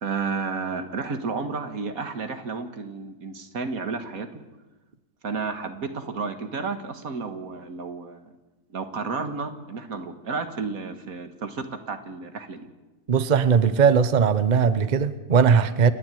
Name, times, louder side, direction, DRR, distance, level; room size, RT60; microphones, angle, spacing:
voice 1, 0.0-4.3 5.2-8.3 8.7-12.7, right 4 dB, 75° right, 8 dB, 2.0 m, -32 dB
voice 2, 13.1-15.9, right 6 dB, 35° right, 13 dB, 0.8 m, -19 dB
28.5 x 10.5 x 9.2 m, 1.1 s
omnidirectional pair, 1.5 m